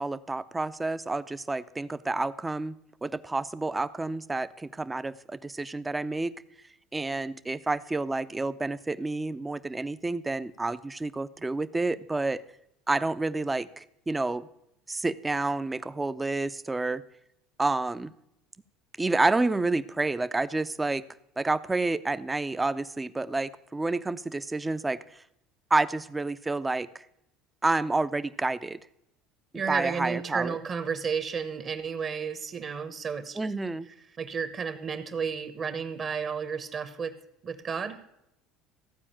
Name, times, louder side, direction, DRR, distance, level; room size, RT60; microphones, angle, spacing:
voice 1, 0.0-2.7 3.0-5.1 5.4-6.3 6.9-12.4 12.9-14.5 14.9-17.0 17.6-18.1 19.0-21.0 21.4-25.0 25.7-26.9 27.6-28.8 29.7-30.6 33.4-33.9, right 2 dB, 15° right, 14 dB, 0.5 m, -29 dB
voice 2, 29.5-33.5 34.2-37.1 37.4-38.0, right 6 dB, 35° right, 11 dB, 1.0 m, -32 dB
14.5 x 4.9 x 8.7 m, 0.82 s
supercardioid pair, 115°, 0 cm